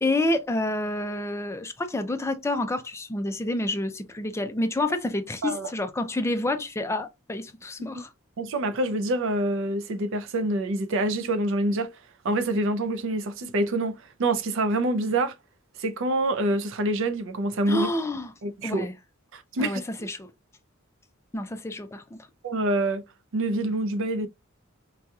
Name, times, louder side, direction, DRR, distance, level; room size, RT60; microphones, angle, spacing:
voice 1, 0.0-8.1 17.7-18.3 18.6-18.9 19.6-20.3 21.3-22.2, left 2 dB, 15° left, 0.4 m, -28 dB
voice 2, 8.4-11.9 12.2-15.3 15.8-17.9 18.4-18.9 19.3-19.8 22.4-23.0 23.3-24.3, right 1 dB, 60° right, 0.5 m, -26 dB
4.6 x 2.8 x 2.3 m
head